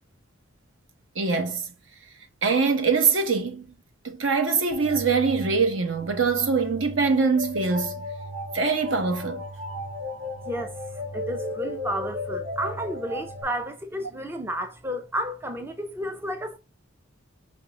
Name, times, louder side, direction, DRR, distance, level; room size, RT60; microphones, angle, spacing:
voice 1, 1.2-1.7 2.4-3.7 4.0-8.1 8.5-9.4, right 4 dB, 70° right, 0.8 m, -23 dB
sound 1, 4.7-13.4, left 2 dB, 45° right, 1.3 m, -35 dB
voice 2, 11.1-16.6, equal, 10° right, 0.4 m, -31 dB
5.2 x 3.5 x 2.8 m
head